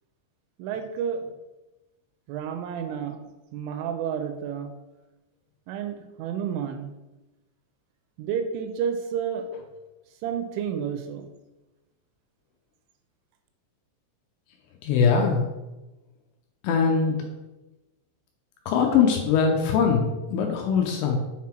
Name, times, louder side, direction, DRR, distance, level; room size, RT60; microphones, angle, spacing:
voice 1, 0.6-1.3 2.3-4.7 5.7-6.9 8.2-9.5 10.2-11.3, right 8 dB, 85° right, 7 dB, 2.9 m, -30 dB
voice 2, 14.8-15.5 16.6-17.2 18.7-21.2, left 6 dB, 80° left, 2 dB, 2.7 m, -22 dB
7.4 x 3.8 x 4.4 m, 1.0 s
omnidirectional pair, 5.7 m